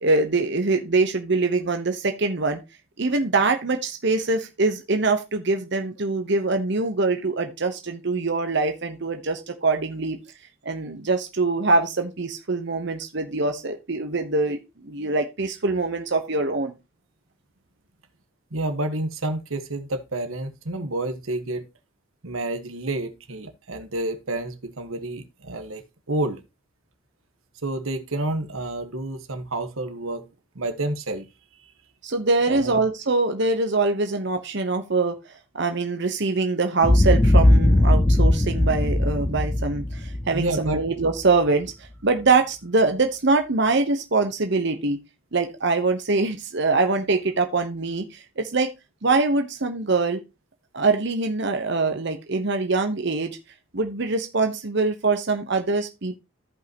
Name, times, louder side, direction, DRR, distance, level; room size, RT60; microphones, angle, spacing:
voice 1, 0.0-2.6 3.0-10.2 10.6-16.7 32.0-35.2 35.5-41.7 42.0-45.0 45.3-48.7 49.0-50.2 50.7-53.4 53.7-56.2, right 3 dB, 55° right, 1.0 m, -23 dB
voice 2, 18.5-21.7 22.2-25.8 26.1-26.4 27.6-30.2 30.5-31.3 32.5-32.8 40.3-40.8, right 2 dB, 90° right, 1.4 m, -29 dB
Boom, 36.8-41.1, left 1 dB, 15° left, 0.5 m, -19 dB
14.5 x 5.5 x 2.9 m
head